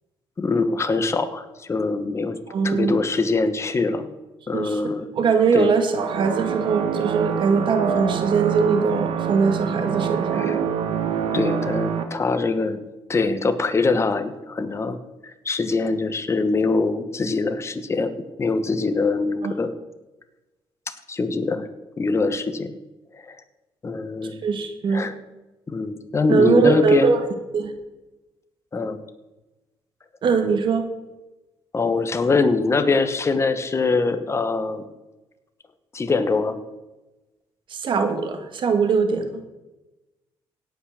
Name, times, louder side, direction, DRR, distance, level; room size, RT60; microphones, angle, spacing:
voice 1, 0.4-2.4 2.6-4.1 4.5-5.1 5.5-5.7 10.3-10.6 11.3-12.8 13.1-15.0 15.2-18.1 18.4-19.7 21.1-21.7 22.0-22.7 23.1-23.3 23.8-24.5 24.9-25.1 25.7-27.1 28.7-29.0 31.7-34.8 35.9-36.6, left 3 dB, 30° left, 9 dB, 1.2 m, -23 dB
voice 2, 2.5-3.0 4.5-10.6 19.4-19.5 24.4-25.1 26.3-27.2 27.5-27.7 30.2-30.9 37.7-39.4, right 5 dB, 55° right, 7 dB, 1.8 m, -21 dB
sound 1, 5.9-12.0, right 8 dB, 75° right, 1.4 m, -26 dB
17.0 x 6.0 x 6.5 m, 1.1 s
cardioid pair, 100°, 10 cm